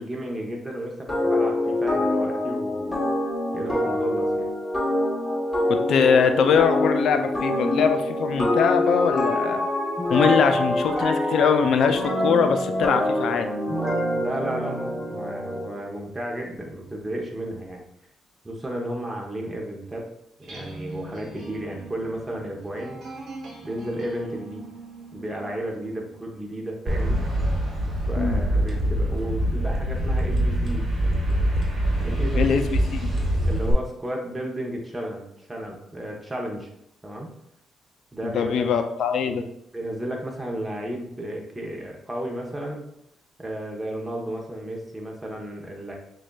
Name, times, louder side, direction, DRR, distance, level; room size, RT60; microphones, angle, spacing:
voice 1, 0.0-3.0 3.5-4.5 14.2-17.8 18.4-20.0 20.4-23.0 23.6-24.6 25.1-27.2 28.1-30.9 32.0-32.5 33.5-36.7 37.0-37.3 38.1-38.5 39.3-39.4 39.7-42.8 43.4-45.9, right 1 dB, 15° right, -1 dB, 0.8 m, -33 dB
sound 1, 1.1-15.7, left 1 dB, 10° left, 1.3 m, -25 dB
voice 2, 5.7-9.6 10.1-13.5 28.2-28.3 32.3-33.1 38.2-39.5, left 6 dB, 70° left, 8 dB, 0.4 m, -22 dB
sound 2, 20.4-26.3, right 2 dB, 60° right, 1.0 m, -42 dB
sound 3, 26.9-33.7, right 1 dB, 40° right, 1.3 m, -24 dB
6.2 x 2.4 x 2.3 m, 0.77 s
cardioid pair, 90°, 0 cm